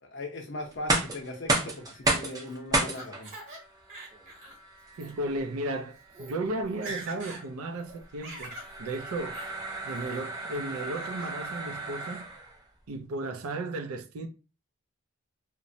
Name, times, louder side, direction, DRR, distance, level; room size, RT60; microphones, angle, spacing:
voice 1, 0.0-3.3, left 1 dB, 55° left, 0.6 m, -39 dB
sound 1, 0.7-12.6, right 2 dB, 15° right, 0.5 m, -33 dB
Laughter, 2.0-3.6 3.9-4.6 4.9-5.1 5.8-5.9 6.1-6.4 6.7-7.4 7.8-8.7 9.3-9.5 9.9-10.4 10.9-11.3, right 2 dB, 35° right, 1.0 m, -43 dB
voice 2, 5.0-9.4 9.8-12.3 12.9-14.3, right 2 dB, 85° right, 0.4 m, -34 dB
2.9 x 2.1 x 2.6 m
head